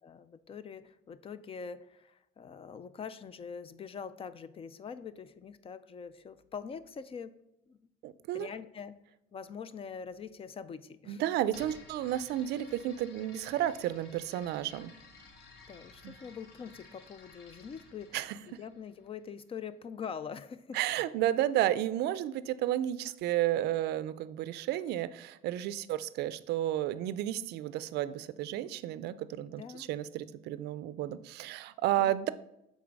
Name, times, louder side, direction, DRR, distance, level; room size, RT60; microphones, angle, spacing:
voice 1, 0.0-7.3 7.7-7.8 8.3-9.0 9.3-11.2 15.7-18.2 18.5-20.8 29.5-29.9 32.0-32.1, left 6 dB, 35° left, 14 dB, 0.4 m, -44 dB
voice 2, 8.0-8.5 11.1-14.9 16.0-16.1 18.1-18.4 20.7-32.3, right 12 dB, 75° right, 15 dB, 0.4 m, -32 dB
sound 1, 11.5-19.3, left 3 dB, 70° left, 1.4 m, -55 dB
7.3 x 3.9 x 4.6 m, 0.85 s
cardioid pair, 110°, 17 cm